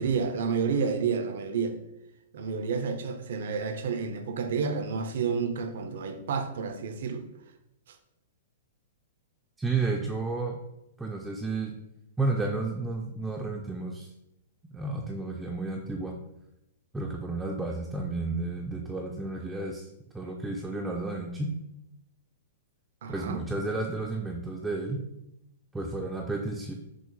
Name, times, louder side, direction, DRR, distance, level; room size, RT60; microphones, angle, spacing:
voice 1, 0.0-1.8 2.3-7.3 7.9-8.0 23.0-23.4, right 5 dB, 70° right, 7 dB, 0.5 m, -30 dB
voice 2, 9.6-10.6 11.0-11.7 12.2-14.1 14.7-16.2 16.9-19.9 20.1-21.5 23.1-25.0 25.7-26.7, right 3 dB, 5° right, -1 dB, 0.3 m, -32 dB
6.1 x 2.1 x 3.1 m, 0.85 s
hypercardioid pair, 150°, 0 cm